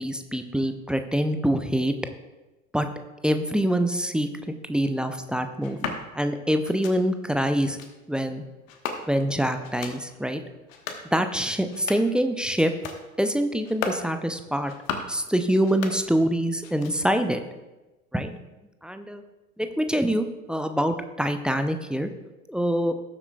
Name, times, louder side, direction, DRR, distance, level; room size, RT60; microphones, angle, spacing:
voice 1, 0.0-1.9 2.7-2.9 3.2-7.8 8.1-8.4 9.1-10.4 11.1-12.7 13.2-14.7 15.1-17.4 18.1-18.4 18.8-19.2 19.6-22.1 22.5-22.9, equal, ahead, 7 dB, 0.5 m, -25 dB
sound 1, 5.6-6.0 6.6-7.0 7.6-7.9 8.7-9.3 9.6-10.0 10.6-11.1 11.6-12.2 12.6-13.0 13.6-14.1 14.6-15.2 15.6-16.3 16.6-17.2, left 6 dB, 60° left, 1.3 m, -36 dB
18.5 x 7.5 x 2.3 m, 1.1 s
figure-of-eight pair, 70°, 44 cm